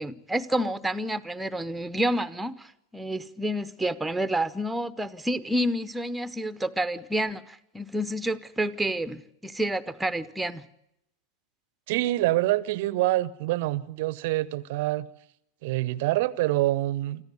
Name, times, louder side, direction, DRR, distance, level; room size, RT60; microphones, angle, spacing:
voice 1, 0.0-10.7, right 1 dB, 5° right, 0.9 m, -29 dB
voice 2, 11.9-15.1 15.6-17.2, right 17 dB, 50° right, 0.8 m, -26 dB
26.0 x 14.5 x 9.5 m
figure-of-eight pair, 90°, 0 cm